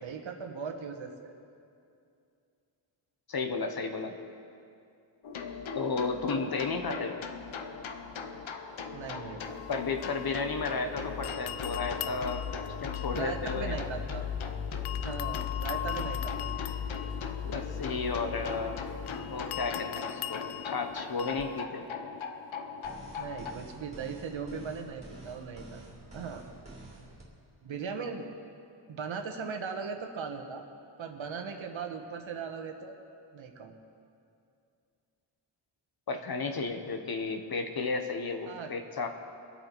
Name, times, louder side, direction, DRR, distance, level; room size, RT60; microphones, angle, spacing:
voice 1, 0.0-1.4 5.5-5.6 8.9-9.6 13.1-14.3 15.0-16.5 23.2-25.8 26.1-26.4 27.6-28.2 28.9-30.7 31.0-32.9 33.3-33.8 38.5-38.7, right 5 dB, 65° right, 5 dB, 1.3 m, -38 dB
voice 2, 3.3-4.2 5.7-7.1 9.7-12.4 12.8-13.8 17.4-18.8 19.3-21.8 36.1-39.1, left 4 dB, 45° left, 6 dB, 1.1 m, -33 dB
sound 1, 5.2-23.5, left 6 dB, 70° left, 1.0 m, -38 dB
sound 2, 9.4-10.9 11.2-14.4 14.9-21.6, left 13 dB, 90° left, 0.6 m, -41 dB
sound 3, 22.8-27.2, right 2 dB, 15° right, 2.7 m, -48 dB
24.5 x 8.3 x 4.6 m, 2.5 s
wide cardioid pair, 140°, 49 cm